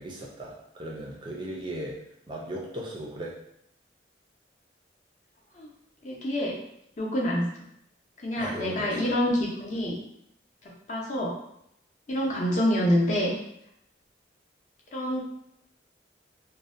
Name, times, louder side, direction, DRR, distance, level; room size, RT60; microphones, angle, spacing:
voice 1, 0.0-2.0 2.3-3.4 8.3-9.1, right 1 dB, 25° right, -2 dB, 0.3 m, -37 dB
voice 2, 6.0-6.6 7.0-7.4 8.2-10.0 10.9-11.3 12.1-13.4 14.9-15.2, equal, 40° left, -3 dB, 0.5 m, -26 dB
2.5 x 2.0 x 2.4 m, 0.75 s
head